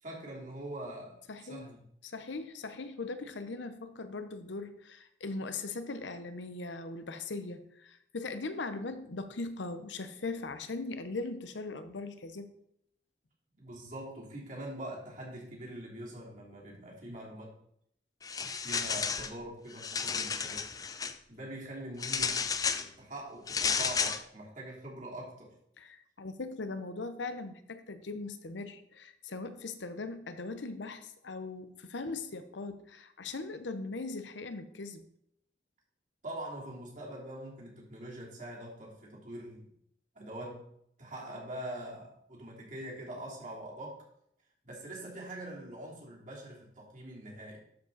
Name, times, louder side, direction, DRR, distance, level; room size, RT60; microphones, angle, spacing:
voice 1, 0.0-1.2 1.5-1.8 13.6-17.5 18.6-20.6 21.3-22.5 22.8-25.5 36.2-39.7 40.1-40.7 41.0-44.0 44.6-47.6, right 1 dB, 45° right, -4 dB, 3.0 m, -43 dB
voice 2, 1.3-1.6 2.0-12.5 25.8-35.0, left 3 dB, 85° left, 9 dB, 0.8 m, -40 dB
sound 1, 18.2-19.3 19.7-21.1 22.0-22.9 23.5-24.2, left 5 dB, 20° left, 0.4 m, -32 dB
12.0 x 5.1 x 4.0 m, 0.72 s
head